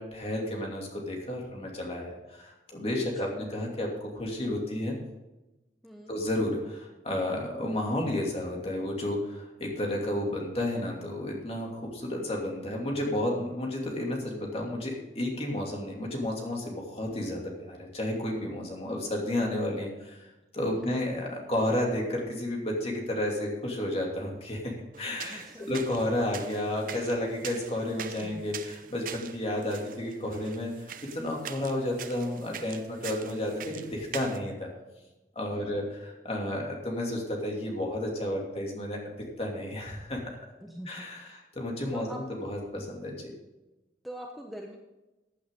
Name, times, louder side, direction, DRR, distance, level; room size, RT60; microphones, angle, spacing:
voice 1, 0.0-5.0 6.1-20.3 20.5-34.7 35.3-39.1 39.4-40.2 40.9-43.3, left 1 dB, 35° left, -1 dB, 2.6 m, -32 dB
voice 2, 5.8-6.2 20.7-21.0 25.2-25.7 28.2-28.4 35.5-35.8 40.6-41.4 41.9-42.2 44.0-44.8, equal, ahead, 0 dB, 0.9 m, -44 dB
sound 1, 24.9-34.4, right 8 dB, 50° right, 0.7 m, -44 dB
15.0 x 8.5 x 3.8 m, 1.0 s
head